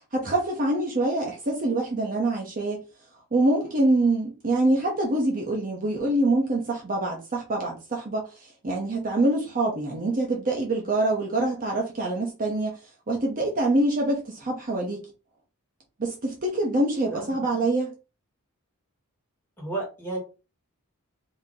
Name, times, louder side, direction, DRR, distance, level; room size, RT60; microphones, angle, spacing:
voice 1, 0.1-2.8 3.3-8.3 8.6-12.7 13.1-15.1 16.0-17.9, right 2 dB, 40° right, 0.9 m, -25 dB
voice 2, 19.6-20.2, right 2 dB, 10° left, 1.8 m, -32 dB
2.9 x 2.9 x 3.7 m
head